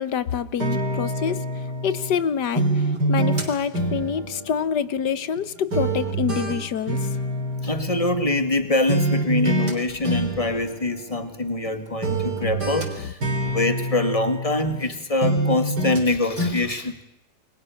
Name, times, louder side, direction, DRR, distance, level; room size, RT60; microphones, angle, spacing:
voice 1, 0.0-1.4 1.8-7.1 13.0-13.1, left 7 dB, 75° left, 15 dB, 1.7 m, -26 dB
sound 1, 0.6-2.2 2.5-5.4 5.7-8.6 8.9-9.7 10.0-11.7 12.0-14.9 15.2-16.1 16.4-16.5, right 1 dB, 70° right, 4.7 m, -26 dB
voice 2, 7.6-13.2 13.4-17.0, left 2 dB, 20° left, 9 dB, 2.0 m, -24 dB
29.0 x 22.5 x 6.5 m, 0.85 s
omnidirectional pair, 1.9 m